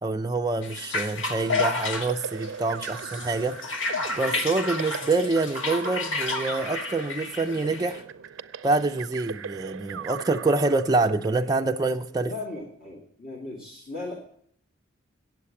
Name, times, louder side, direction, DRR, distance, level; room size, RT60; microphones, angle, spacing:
voice 1, 0.0-3.6 4.2-8.0 8.6-12.3, right 3 dB, 20° right, 0.4 m, -26 dB
sound 1, 0.6-8.0, left 3 dB, 85° left, 1.5 m, -31 dB
sound 2, 1.8-12.4, right 6 dB, 75° right, 0.5 m, -39 dB
voice 2, 12.3-14.1, left 2 dB, 50° left, 2.1 m, -37 dB
8.6 x 7.6 x 8.4 m
head